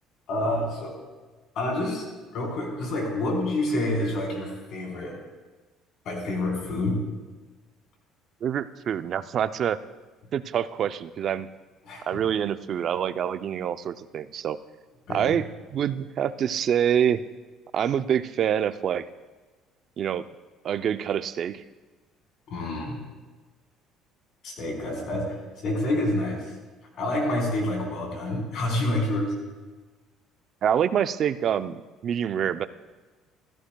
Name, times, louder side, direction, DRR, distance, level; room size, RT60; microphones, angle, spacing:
voice 1, 0.3-0.9 1.6-2.1 2.3-5.2 6.0-7.1 11.8-12.1 15.1-15.4 22.5-23.0 24.4-26.5 26.9-29.3, left 1 dB, 60° left, -1 dB, 3.9 m, -28 dB
voice 2, 8.4-9.8 10.3-11.5 12.1-14.6 15.1-17.3 17.7-19.1 20.0-20.3 20.6-21.6 30.6-32.7, right 9 dB, 50° right, 12 dB, 0.5 m, -26 dB
14.5 x 14.0 x 2.3 m, 1.3 s
cardioid pair, 110°, 0 cm